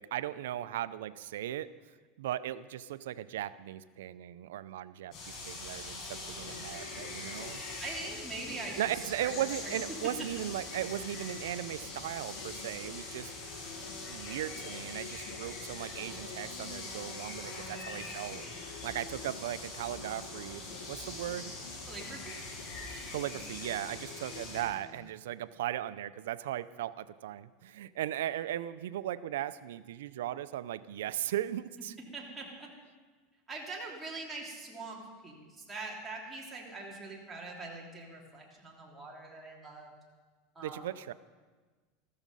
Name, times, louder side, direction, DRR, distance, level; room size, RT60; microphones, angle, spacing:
voice 1, 0.0-1.7 2.2-7.6 8.8-13.3 14.1-18.4 18.8-20.6 20.9-21.5 23.1-31.9 40.6-41.1, right 12 dB, 90° right, 15 dB, 0.5 m, -37 dB
sound 1, 5.1-24.6, left 3 dB, 50° left, 5.9 m, -43 dB
sound 2, 6.4-17.6 17.9-18.0 18.3-25.1, left 6 dB, 85° left, 2.1 m, -52 dB
voice 2, 7.8-9.3 9.6-9.8 21.9-22.4 32.1-32.7 33.5-40.0 40.5-40.8, right 3 dB, 15° right, -3 dB, 3.2 m, -43 dB
14.5 x 13.5 x 5.4 m, 1.4 s
supercardioid pair, 130°, 0 cm